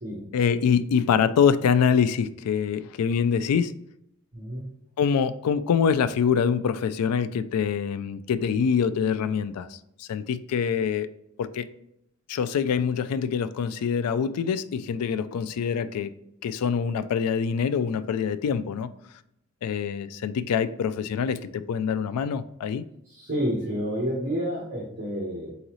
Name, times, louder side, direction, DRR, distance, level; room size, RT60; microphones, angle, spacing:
voice 1, 0.3-3.7 5.0-11.1 11.4-11.7 12.3-16.1 16.4-18.9 19.6-22.8, left 7 dB, 80° left, 0.3 m, -25 dB
voice 2, 4.3-4.7 23.1-25.5, equal, 40° right, 1.1 m, -29 dB
3.9 x 3.8 x 3.0 m
head